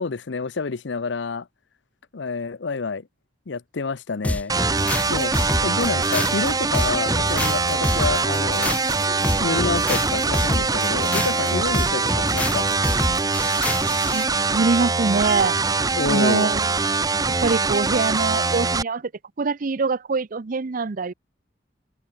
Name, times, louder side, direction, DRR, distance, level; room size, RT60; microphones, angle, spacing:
voice 1, 0.0-1.5 2.1-3.1 3.5-4.5 5.1-5.3 5.6-8.8 9.4-12.7 16.0-16.5, left 4 dB, 70° left, 0.7 m, -28 dB
sound 1, 4.2-14.3, left 1 dB, 10° left, 0.5 m, -27 dB
sound 2, 4.5-18.8, right 4 dB, 20° right, 0.9 m, -23 dB
Subway metro underground, 7.3-12.9, left 1 dB, 30° left, 3.9 m, -42 dB
voice 2, 14.5-15.6 16.1-16.8 17.4-19.0 19.4-21.1, right 4 dB, 50° right, 0.6 m, -23 dB
open air
head